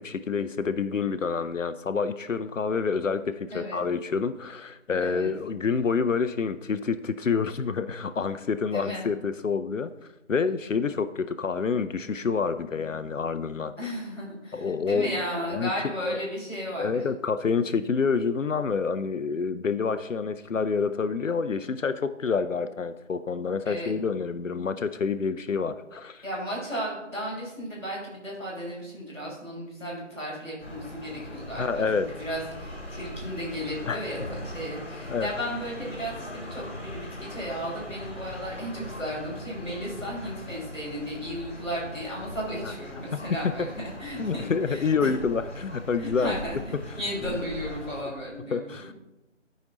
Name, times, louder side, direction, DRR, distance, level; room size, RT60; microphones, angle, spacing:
voice 1, 0.0-9.9 10.3-13.7 14.5-15.1 15.5-15.7 16.1-16.2 16.8-26.2 31.6-32.1 33.9-34.0 35.1-35.3 42.6-42.7 43.1-43.7 44.2-46.4 47.3-47.4 48.5-48.9, left 5 dB, 75° left, 12 dB, 0.6 m, -28 dB
voice 2, 3.5-3.8 5.0-5.3 8.7-9.1 13.8-17.0 23.6-23.9 26.2-45.1 46.0-46.6 47.0-48.9, equal, 5° left, -15 dB, 3.7 m, -34 dB
sound 1, 30.6-48.0, left 1 dB, 55° left, 3.6 m, -40 dB
13.5 x 5.2 x 3.9 m, 0.96 s
figure-of-eight pair, 160°, 38 cm